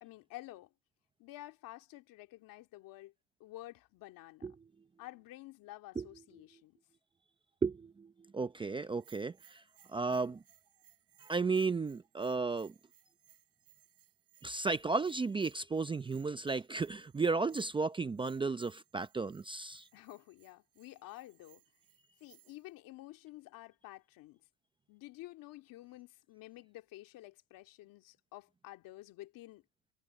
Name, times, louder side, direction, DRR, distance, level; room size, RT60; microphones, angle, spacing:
voice 1, 0.0-0.7 1.2-3.1 3.4-4.5 5.0-6.8 19.9-21.6 22.2-24.4 24.9-29.6, left 16 dB, 55° left, 2.4 m, -51 dB
voice 2, 7.6-9.6 9.9-10.4 11.2-12.7 14.4-19.9, right 4 dB, 15° right, 0.6 m, -34 dB
Bell, 8.9-22.7, right 12 dB, 35° right, 7.1 m, -66 dB
cardioid pair, 130°, 39 cm